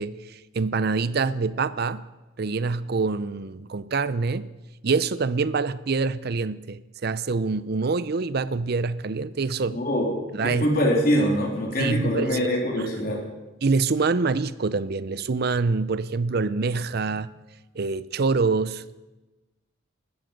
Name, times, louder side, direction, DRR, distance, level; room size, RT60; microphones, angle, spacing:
voice 1, 0.0-2.0 2.4-4.5 4.8-9.8 10.3-10.6 11.8-12.4 12.8-12.9 13.6-17.3 17.8-18.8, right 4 dB, 55° right, 0.6 m, -25 dB
voice 2, 9.7-10.1 10.4-13.2, equal, 50° left, 3.4 m, -23 dB
19.5 x 14.0 x 5.2 m
head